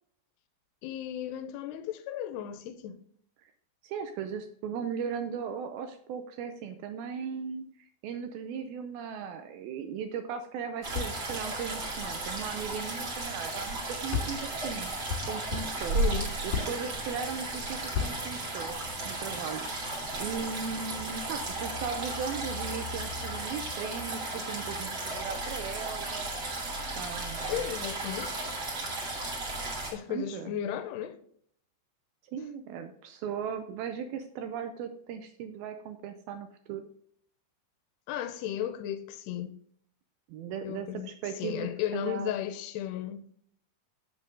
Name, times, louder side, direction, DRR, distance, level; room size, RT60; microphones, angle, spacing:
voice 1, 0.8-3.0 15.9-16.4 27.5-28.4 29.9-31.2 38.1-39.6 40.6-43.3, left 11 dB, 85° left, 2.7 m, -35 dB
voice 2, 3.8-14.9 15.3-16.0 16.4-18.8 19.1-19.7 20.2-26.3 27.0-27.7 30.1-30.6 32.3-36.8 40.3-42.3, right 7 dB, 80° right, 2.3 m, -37 dB
sound 1, 10.8-13.4 13.7-13.8 14.1-17.0 17.9-18.4, left 6 dB, 60° left, 3.1 m, -36 dB
sound 2, 10.8-29.9, right 2 dB, 40° right, 2.3 m, -35 dB
7.5 x 6.8 x 3.7 m
omnidirectional pair, 4.8 m